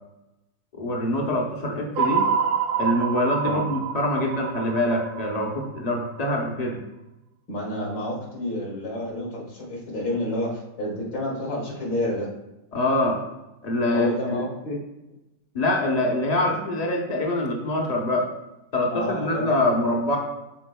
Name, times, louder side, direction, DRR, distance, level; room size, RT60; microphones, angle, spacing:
voice 1, 0.7-2.3 2.8-6.8 12.7-13.2 13.6-14.4 15.5-18.3 18.7-20.2, left 1 dB, 65° left, 0 dB, 0.4 m, -24 dB
sound 1, 2.0-6.2, right 7 dB, 90° right, 1.3 m, -27 dB
voice 2, 7.5-12.3 13.9-14.8 18.9-19.6, left 1 dB, 85° left, -5 dB, 2.8 m, -29 dB
12.0 x 4.2 x 2.2 m, 0.96 s
omnidirectional pair, 2.0 m